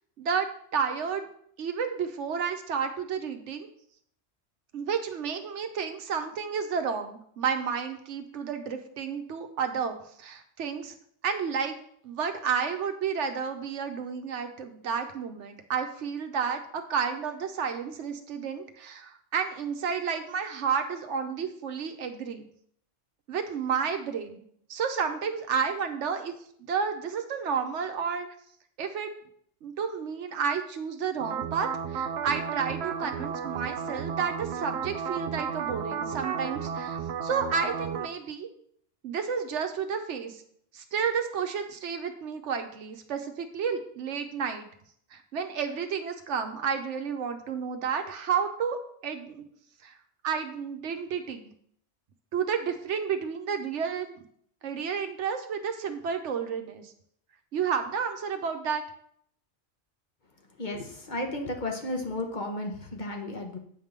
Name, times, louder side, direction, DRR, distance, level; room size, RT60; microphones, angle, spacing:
voice 1, 0.2-1.3 1.6-3.7 4.7-10.9 11.2-22.5 23.3-24.4 24.7-26.3 26.6-28.3 28.8-29.1 29.6-38.5 39.0-40.4 40.7-44.7 45.1-48.8 49.0-49.5 49.8-50.0 50.2-51.5 52.3-54.2 54.6-56.9 57.5-58.8, right 6 dB, 90° right, 7 dB, 1.1 m, -31 dB
sound 1, 31.2-38.1, right 7 dB, 70° right, 0.8 m, -33 dB
voice 2, 60.5-63.6, left 1 dB, 45° left, 2 dB, 1.2 m, -33 dB
8.1 x 3.6 x 6.5 m, 0.65 s
omnidirectional pair, 1.2 m